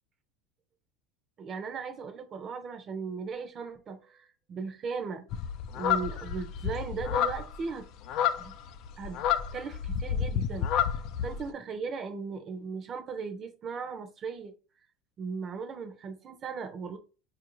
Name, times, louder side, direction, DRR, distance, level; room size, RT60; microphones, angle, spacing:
voice 1, 1.4-5.3 5.7-7.9 8.4-8.5 9.0-9.2 9.5-10.7 11.2-14.5 15.2-17.0, right 5 dB, 30° right, 8 dB, 0.6 m, -37 dB
sound 1, 5.3-11.4, left 9 dB, 50° left, 0.4 m, -30 dB
4.5 x 2.5 x 3.0 m, 0.34 s
supercardioid pair, 130°, 0 cm